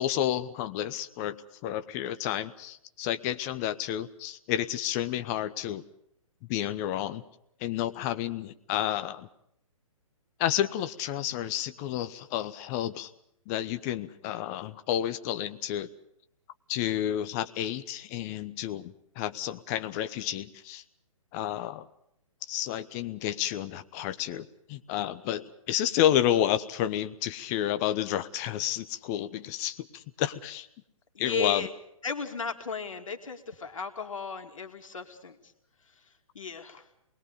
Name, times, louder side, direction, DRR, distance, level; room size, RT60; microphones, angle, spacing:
voice 1, 0.0-1.4 1.6-5.8 6.5-7.2 7.6-9.3 10.4-13.1 13.5-15.9 16.7-20.8 21.3-21.9 22.5-30.7 31.2-31.7, left 11 dB, 30° left, 11 dB, 0.9 m, -30 dB
voice 2, 31.1-31.7 32.0-35.4 36.3-36.8, left 4 dB, 65° left, 5 dB, 2.5 m, -35 dB
27.5 x 21.0 x 5.3 m, 0.75 s
figure-of-eight pair, 130°, 18 cm